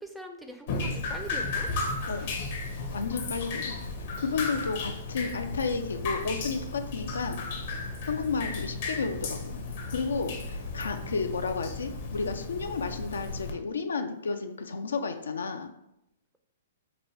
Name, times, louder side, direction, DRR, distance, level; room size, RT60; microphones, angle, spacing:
voice 1, 0.0-1.7 10.8-11.5, right 1 dB, 5° right, 4 dB, 0.4 m, -43 dB
Drip, 0.7-13.5, left 3 dB, 55° left, 0.7 m, -34 dB
voice 2, 2.1-2.4 2.9-3.7 4.2-7.4 8.1-9.6 9.9-15.7, left 4 dB, 80° left, 7 dB, 0.4 m, -32 dB
3.9 x 2.2 x 3.1 m, 0.82 s
hypercardioid pair, 130°, 0 cm